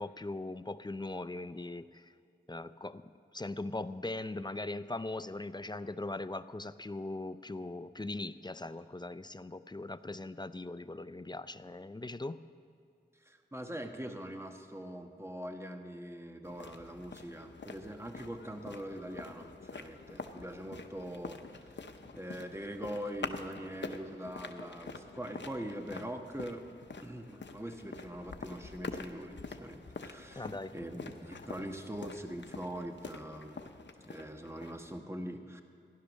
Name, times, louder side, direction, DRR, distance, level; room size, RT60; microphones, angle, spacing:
voice 1, 0.0-2.1 2.5-3.0 3.3-12.5 30.3-30.7, left 2 dB, 25° left, 13 dB, 0.5 m, -40 dB
voice 2, 13.2-21.7 22.1-26.7 27.0-33.7 34.0-35.6, equal, 15° right, 5 dB, 1.3 m, -42 dB
sound 1, 16.4-35.0, left 4 dB, 85° left, 0.8 m, -46 dB
15.5 x 11.5 x 6.4 m, 2.3 s
wide cardioid pair, 50°, 18 cm